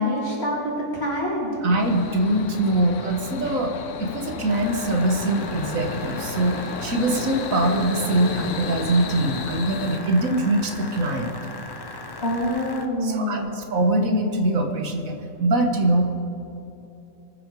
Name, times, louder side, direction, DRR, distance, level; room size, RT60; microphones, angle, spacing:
voice 1, 0.0-1.6 12.2-13.5, left 1 dB, 45° left, -5 dB, 3.7 m, -26 dB
voice 2, 1.6-6.5 6.8-11.4 13.0-16.0, right 1 dB, 70° right, 3 dB, 1.9 m, -23 dB
sound 1, 1.8-10.0, left 6 dB, 65° left, 1.1 m, -34 dB
sound 2, 4.5-12.9, left 2 dB, 20° left, 0.8 m, -38 dB
25.0 x 9.7 x 4.8 m, 2.9 s
omnidirectional pair, 1.5 m